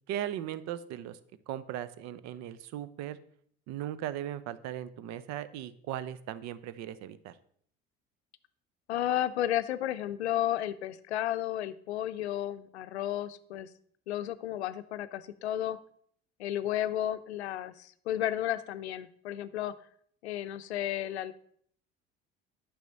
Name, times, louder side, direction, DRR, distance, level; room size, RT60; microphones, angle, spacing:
voice 1, 0.1-1.2 1.5-3.2 3.7-7.4, right 11 dB, 55° right, 15 dB, 0.7 m, -38 dB
voice 2, 8.9-13.7 14.1-15.8 16.4-19.7 20.2-21.3, left 12 dB, 85° left, 13 dB, 0.5 m, -33 dB
9.2 x 6.4 x 4.0 m, 0.62 s
hypercardioid pair, 65°, 32 cm